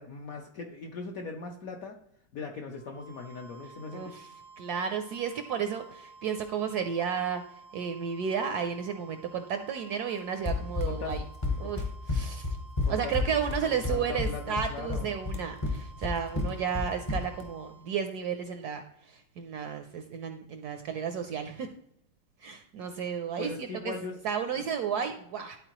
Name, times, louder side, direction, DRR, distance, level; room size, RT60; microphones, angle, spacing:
voice 1, 0.0-2.0 2.3-4.1 10.8-11.2 11.6-11.7 12.8-13.4 13.6-15.1 23.4-24.2 24.5-24.7, left 4 dB, 70° left, 2 dB, 0.8 m, -40 dB
sound 1, 2.7-18.0, right 3 dB, 90° left, 2.3 m, -53 dB
voice 2, 3.9-4.2 4.6-7.4 7.7-11.2 11.6-12.5 12.9-21.7 22.4-23.9 24.2-25.6, right 7 dB, 75° right, 7 dB, 0.9 m, -33 dB
Run, 10.4-17.5, left 3 dB, 35° left, 0.4 m, -31 dB
11.5 x 4.3 x 2.9 m, 0.75 s
omnidirectional pair, 2.2 m